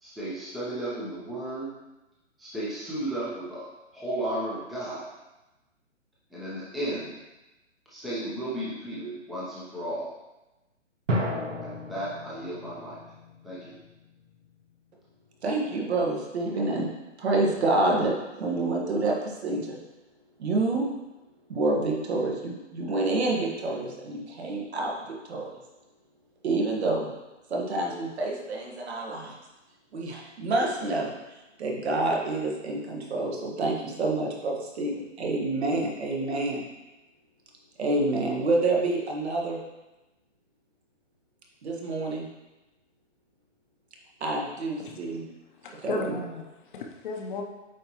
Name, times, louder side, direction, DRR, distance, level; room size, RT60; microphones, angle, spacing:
voice 1, 0.0-1.7 2.4-3.7 3.9-5.0 6.3-7.1 7.9-10.1 11.6-13.0 13.4-13.7, right 1 dB, ahead, -9 dB, 0.7 m, -34 dB
sound 1, 11.1-14.5, equal, 75° right, 1.5 m, -33 dB
voice 2, 15.4-16.9 17.2-18.1 18.4-19.8 20.4-20.9 21.5-25.6 26.4-27.1 27.5-29.3 29.9-36.6 37.8-39.6 41.6-42.3 44.2-45.2 45.8-46.2, right 2 dB, 60° right, -1 dB, 1.7 m, -28 dB
voice 3, 45.6-47.4, left 3 dB, 40° left, 2 dB, 0.8 m, -35 dB
8.3 x 4.5 x 3.0 m, 1.0 s
hypercardioid pair, 135°, 37 cm